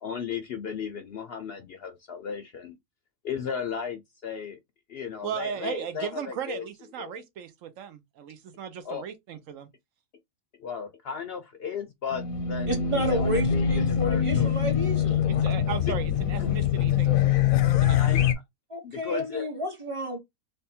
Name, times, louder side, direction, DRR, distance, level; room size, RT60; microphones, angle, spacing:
voice 1, 0.0-2.7 3.2-4.6 4.9-6.6 7.0-7.1 8.8-9.0 10.6-14.5 15.2-15.3 15.8-15.9 16.4-16.5 17.9-18.2 18.8-19.5, left 7 dB, 65° left, 0.6 m, -35 dB
voice 2, 5.2-9.7 15.3-18.2, right 8 dB, 75° right, 1.0 m, -37 dB
Race car auto racing / Alarm, 12.1-18.3, left 8 dB, 85° left, 1.1 m, -24 dB
voice 3, 12.7-15.2 18.7-20.2, equal, 25° right, 0.8 m, -31 dB
3.4 x 2.1 x 4.2 m
omnidirectional pair, 1.4 m